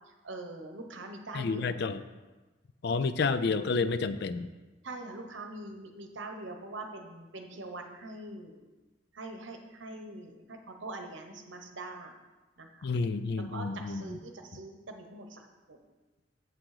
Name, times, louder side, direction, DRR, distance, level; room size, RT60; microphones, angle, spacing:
voice 1, 0.2-1.7 4.8-8.7 9.1-12.1 12.6-12.9 13.5-15.8, right 2 dB, 65° right, 5 dB, 1.0 m, -43 dB
voice 2, 1.3-2.0 2.8-4.5 12.8-14.2, left 4 dB, 55° left, 12 dB, 0.4 m, -30 dB
7.6 x 6.0 x 4.9 m, 1.2 s
head